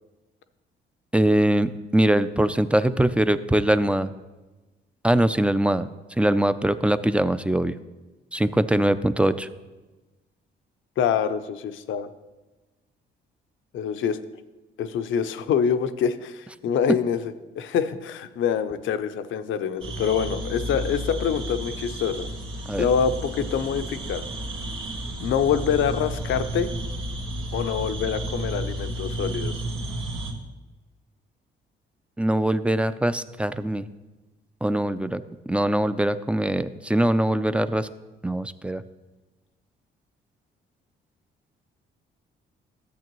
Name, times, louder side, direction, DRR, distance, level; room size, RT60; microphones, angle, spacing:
voice 1, 1.1-4.1 5.0-5.9 6.2-7.7 8.3-9.5 22.7-22.9 32.2-33.9 34.6-35.2 35.5-37.9 38.2-38.8, right 1 dB, 5° right, 13 dB, 0.4 m, -22 dB
voice 2, 11.0-12.1 13.7-14.2 14.8-22.3 22.8-24.2 25.2-26.7 27.5-29.6, left 7 dB, 75° left, 11 dB, 0.7 m, -25 dB
sound 1, 19.8-30.3, right 1 dB, 90° right, 1.5 m, -32 dB
13.5 x 8.1 x 3.0 m, 1.2 s
cardioid pair, 90°, 20 cm